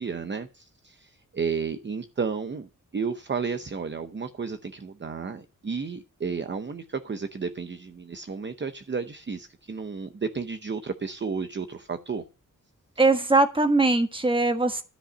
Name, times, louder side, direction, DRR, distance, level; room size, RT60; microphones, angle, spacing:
voice 1, 0.0-12.2 13.0-13.1, right 5 dB, 35° right, 0.7 m, -32 dB
voice 2, 13.0-14.8, right 2 dB, 15° right, 1.4 m, -21 dB
13.0 x 5.4 x 7.7 m
wide cardioid pair, 175°, 32 cm